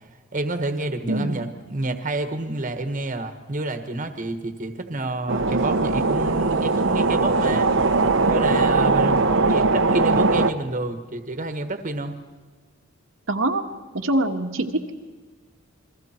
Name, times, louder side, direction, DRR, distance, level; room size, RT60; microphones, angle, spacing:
voice 1, 0.3-7.7 8.2-12.2, right 2 dB, 40° right, 7 dB, 1.5 m, -29 dB
voice 2, 1.1-1.4 13.3-13.6 13.9-14.9, right 1 dB, 85° right, 3 dB, 1.7 m, -24 dB
sound 1, 5.3-10.5, right 3 dB, 65° right, 1.0 m, -20 dB
29.0 x 22.5 x 4.5 m, 1.4 s
head